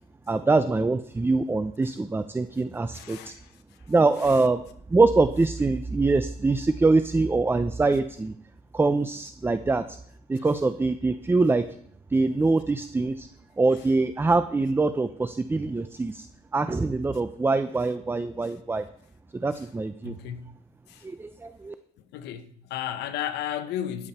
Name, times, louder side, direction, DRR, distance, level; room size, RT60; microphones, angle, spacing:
voice 1, 0.3-3.3 3.9-4.6 4.9-8.3 8.7-10.0 10.3-11.6 12.1-13.3 13.6-16.3 16.5-18.9 19.4-20.2 21.0-21.7, right 3 dB, 15° right, 0.7 m, -24 dB
voice 2, 2.9-3.9 4.2-4.5 10.4-10.5 13.7-13.8 18.4-18.5 19.5-19.6 20.0-20.5 20.9-21.1 22.1-24.1, left 10 dB, 80° left, 1.1 m, -35 dB
13.0 x 11.0 x 4.3 m
cardioid pair, 110°, 17 cm